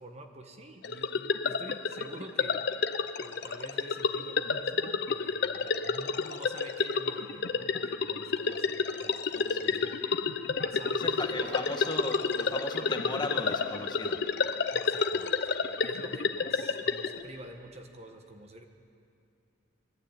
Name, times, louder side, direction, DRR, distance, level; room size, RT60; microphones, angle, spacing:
voice 1, 0.0-2.6 3.1-10.2 10.5-11.7 14.7-18.7, right 1 dB, 35° right, 4 dB, 1.4 m, -48 dB
sound 1, 0.8-17.2, left 5 dB, 60° left, 0.8 m, -30 dB
voice 2, 9.3-9.8 10.9-14.2, left 2 dB, 25° left, 2 dB, 1.9 m, -36 dB
23.0 x 14.5 x 8.9 m, 2.6 s
head